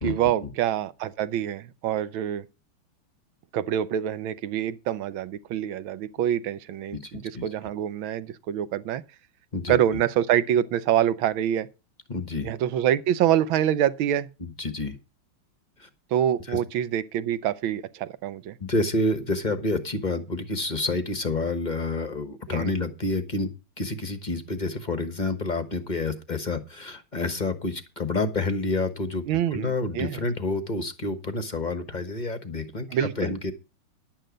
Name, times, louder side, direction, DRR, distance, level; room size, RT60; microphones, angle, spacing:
voice 1, 0.0-2.5 3.5-9.0 9.7-11.7 12.4-14.3 16.1-18.6 22.5-22.7 29.3-30.2 32.9-33.3, right 10 dB, 75° right, 1.5 m, -26 dB
voice 2, 7.0-7.4 9.5-9.8 12.1-12.5 14.4-15.0 15.8-15.9 16.5-16.6 18.6-23.5 23.8-33.5, left 2 dB, 30° left, 1.0 m, -29 dB
11.0 x 9.0 x 5.1 m
omnidirectional pair, 2.3 m